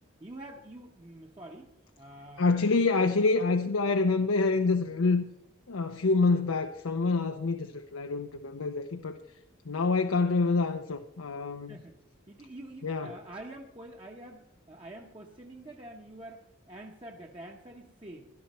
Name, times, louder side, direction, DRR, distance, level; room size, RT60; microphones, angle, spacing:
voice 1, 0.2-1.7 2.0-2.7 11.7-12.0 12.3-18.3, right 1 dB, 25° right, 1.0 m, -46 dB
voice 2, 2.4-5.2 5.7-9.2 9.7-11.8 12.8-13.1, left 3 dB, 90° left, 0.7 m, -27 dB
17.0 x 12.5 x 4.3 m
head